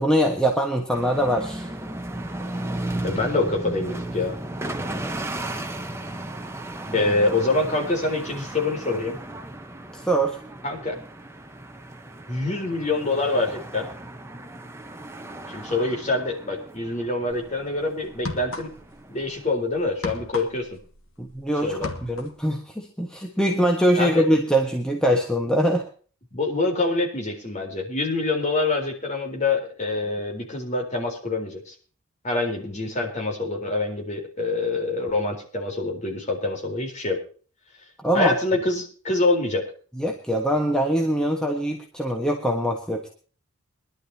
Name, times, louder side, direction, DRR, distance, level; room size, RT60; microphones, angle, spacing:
voice 1, 0.0-1.7 6.8-7.1 9.9-10.4 21.2-25.8 38.0-38.3 40.0-43.1, right 1 dB, 5° left, 1 dB, 1.4 m, -23 dB
sound 1, 0.9-19.5, right 1 dB, 10° right, 1.1 m, -35 dB
voice 2, 3.0-4.4 6.9-9.2 10.6-10.9 12.3-13.8 15.5-18.7 19.1-20.7 21.6-21.9 24.0-24.3 26.3-31.7 32.2-37.2 38.1-39.6, left 2 dB, 30° left, 1 dB, 4.1 m, -25 dB
sound 2, 17.3-17.5 18.1-19.0 19.3-21.4 21.7-22.4, left 2 dB, 65° left, 1.8 m, -35 dB
23.0 x 11.5 x 2.9 m, 0.40 s
head